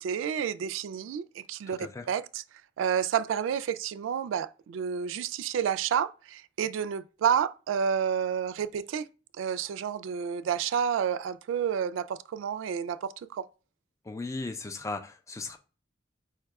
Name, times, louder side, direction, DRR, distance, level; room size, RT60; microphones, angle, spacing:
voice 1, 0.0-1.8 2.1-2.4 2.8-9.0 9.4-13.5, right 8 dB, 80° right, 0.3 m, -30 dB
voice 2, 14.1-15.6, left 3 dB, 15° left, 0.4 m, -36 dB
4.6 x 2.3 x 4.5 m
head